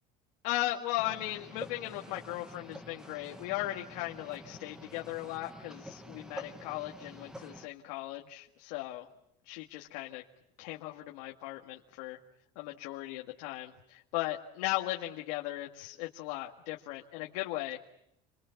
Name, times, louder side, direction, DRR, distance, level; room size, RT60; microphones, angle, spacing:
voice 1, 0.4-9.1 9.5-10.2 10.6-12.2 12.6-17.8, left 17 dB, 80° left, 0 dB, 1.9 m, -37 dB
sound 1, 1.0-7.7, equal, 5° right, 1.1 m, -48 dB
29.5 x 24.0 x 7.2 m, 0.80 s
cardioid pair, 175°, 21 cm